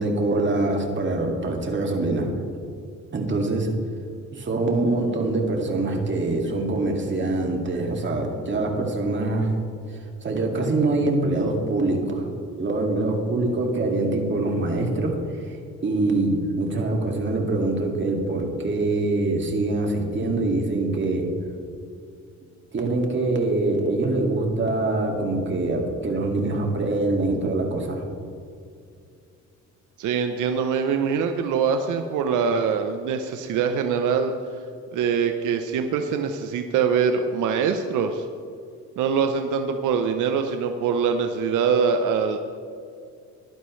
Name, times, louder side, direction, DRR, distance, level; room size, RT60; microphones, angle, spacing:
voice 1, 0.0-2.3 3.1-3.7 4.3-9.6 10.2-15.2 15.8-21.3 22.7-28.0, right 2 dB, 40° right, 1 dB, 2.2 m, -24 dB
voice 2, 30.0-34.3 34.9-38.3 39.0-42.4, right 6 dB, 85° right, 6 dB, 0.7 m, -23 dB
15.5 x 11.5 x 3.2 m, 2.3 s
cardioid pair, 90°, 30 cm